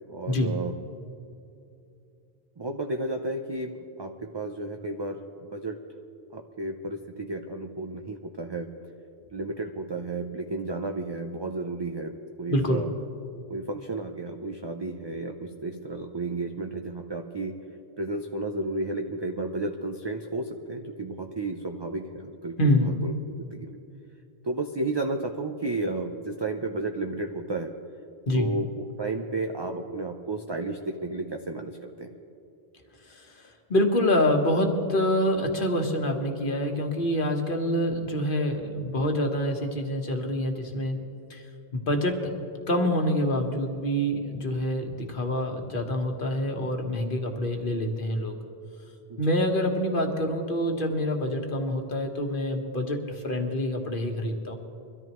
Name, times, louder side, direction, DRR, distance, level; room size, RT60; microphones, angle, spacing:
voice 1, 0.1-0.8 2.6-3.7 4.0-5.2 5.5-5.8 6.3-8.7 9.3-12.9 13.5-17.6 18.0-23.8 24.4-27.8 28.3-32.1 49.1-49.2, right 2 dB, 30° right, 4 dB, 0.6 m, -32 dB
voice 2, 12.5-12.8 22.6-23.0 28.3-28.5 33.1-33.3 33.7-41.0 41.3-41.4 41.7-42.3 42.7-48.4 49.2-54.6, left 1 dB, 55° left, 3 dB, 1.5 m, -26 dB
23.5 x 13.5 x 3.1 m, 2.8 s
omnidirectional pair, 1.0 m